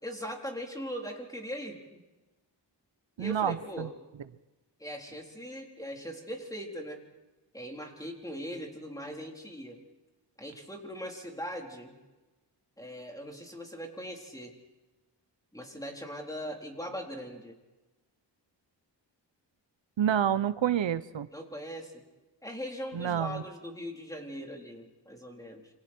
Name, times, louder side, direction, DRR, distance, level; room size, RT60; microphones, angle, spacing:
voice 1, 0.0-2.0 3.2-4.0 4.8-7.0 7.5-9.8 10.4-12.0 12.8-14.5 15.5-17.6 21.3-22.0 22.4-25.7, equal, 10° left, 1 dB, 4.0 m, -40 dB
voice 2, 3.2-3.9 20.0-21.3 22.9-23.4, right 9 dB, 85° right, 13 dB, 1.0 m, -28 dB
28.0 x 26.5 x 4.6 m, 1.1 s
wide cardioid pair, 125°, 44 cm